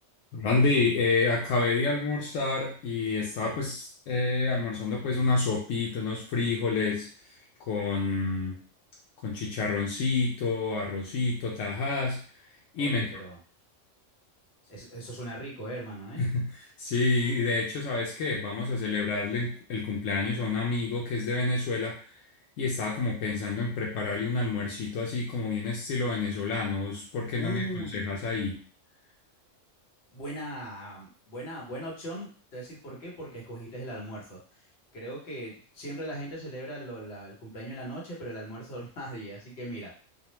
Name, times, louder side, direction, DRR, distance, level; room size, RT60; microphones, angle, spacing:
voice 1, 0.3-7.1 7.7-8.6 9.2-12.2 12.7-13.2 16.2-16.5 16.8-22.0 22.6-28.6, left 3 dB, 85° left, -1 dB, 1.0 m, -28 dB
voice 2, 12.8-13.4 14.7-16.3 27.4-28.1 30.1-34.4 34.9-39.9, right 1 dB, 60° left, -3 dB, 1.2 m, -39 dB
2.6 x 2.1 x 3.0 m, 0.42 s
omnidirectional pair, 1.3 m